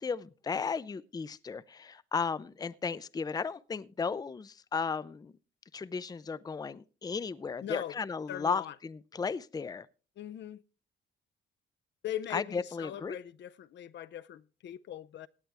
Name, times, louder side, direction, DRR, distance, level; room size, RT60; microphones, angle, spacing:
voice 1, 0.0-5.3 5.7-9.9 12.3-13.2, left 5 dB, 20° left, 0.5 m, -35 dB
voice 2, 7.6-8.0 8.3-8.7 10.2-10.6 12.0-15.3, left 11 dB, 65° left, 0.6 m, -40 dB
17.0 x 9.0 x 3.4 m
cardioid pair, 90°, 20 cm